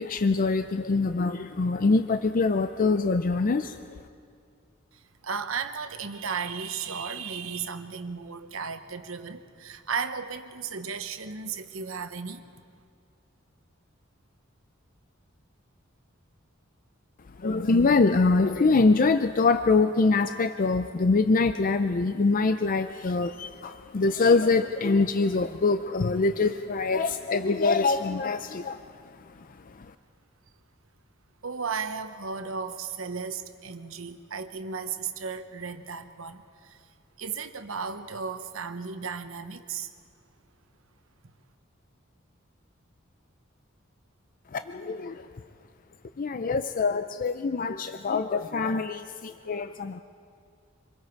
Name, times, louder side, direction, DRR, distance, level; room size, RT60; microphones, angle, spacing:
voice 1, 0.0-3.8 17.4-28.8 44.5-45.3 46.2-50.0, left 3 dB, 45° left, 10 dB, 0.5 m, -24 dB
voice 2, 4.9-12.4 31.4-36.8 37.2-39.9, right 5 dB, 90° right, 9 dB, 1.1 m, -35 dB
26.0 x 21.5 x 4.6 m, 2.3 s
head